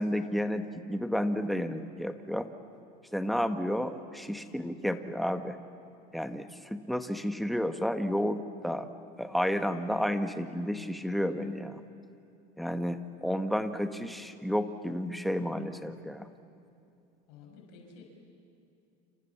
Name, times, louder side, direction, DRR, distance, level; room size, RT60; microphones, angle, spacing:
voice 1, 0.0-2.5 3.1-5.6 6.1-8.9 9.2-11.8 12.6-16.3, equal, ahead, 8 dB, 1.6 m, -31 dB
voice 2, 17.3-18.0, left 5 dB, 80° left, 1 dB, 6.4 m, -51 dB
28.5 x 28.0 x 7.3 m, 2.7 s
supercardioid pair, 105°, 19 cm